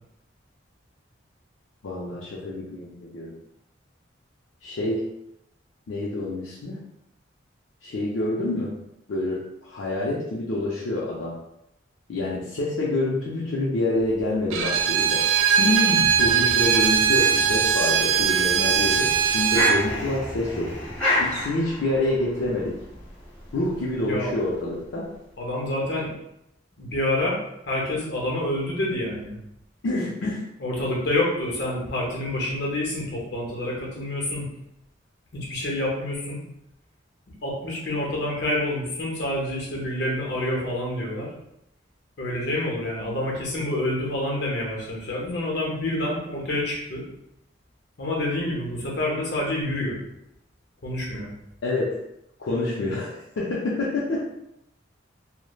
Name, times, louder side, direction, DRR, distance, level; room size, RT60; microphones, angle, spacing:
voice 1, 1.8-3.3 4.6-5.1 5.9-6.8 7.8-8.8 9.1-11.4 12.1-15.2 15.6-20.8 21.1-22.8 23.5-25.1 29.8-30.4 51.6-52.0 52.4-54.2, left 2 dB, 80° left, -5 dB, 0.4 m, -27 dB
Bowed string instrument, 14.5-19.8, right 7 dB, 85° right, 0.3 m, -21 dB
sound 1, 16.0-25.1, left 1 dB, 5° left, 1.0 m, -32 dB
voice 2, 25.4-26.1 26.8-27.4 27.6-29.4 30.6-34.5 35.3-36.4 37.4-41.3 42.2-47.0 48.0-50.0 50.8-51.3, left 1 dB, 60° left, -3 dB, 0.8 m, -27 dB
3.1 x 2.0 x 2.3 m, 0.82 s
head